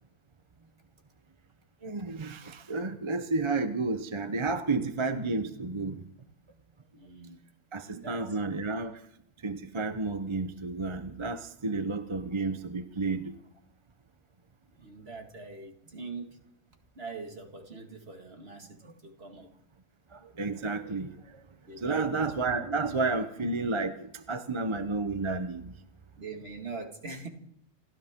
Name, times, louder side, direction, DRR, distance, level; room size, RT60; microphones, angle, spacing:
voice 1, 1.8-6.0 7.7-9.0 9.4-13.3 20.1-21.2 21.8-25.7, right 3 dB, 25° right, 9 dB, 0.7 m, -31 dB
voice 2, 6.9-7.4 7.8-8.4 14.8-16.4 17.0-19.5 21.7-22.3 26.2-27.3, right 4 dB, 50° right, 3 dB, 2.2 m, -42 dB
29.0 x 13.5 x 3.7 m, 0.70 s
omnidirectional pair, 1.4 m